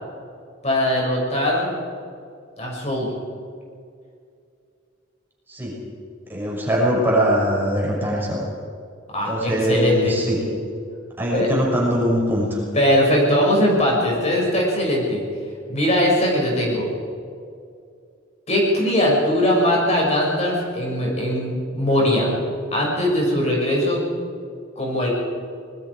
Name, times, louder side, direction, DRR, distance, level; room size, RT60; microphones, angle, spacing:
voice 1, 0.6-1.7 2.6-3.1 9.1-10.1 11.3-11.5 12.7-15.2 15.7-16.9 18.5-22.3 22.7-24.0 24.8-25.1, left 1 dB, 35° left, -2 dB, 6.1 m, -20 dB
voice 2, 6.3-8.4 9.3-10.4 11.2-12.6, equal, 10° right, -4 dB, 6.0 m, -21 dB
25.5 x 21.5 x 4.8 m, 2.3 s
head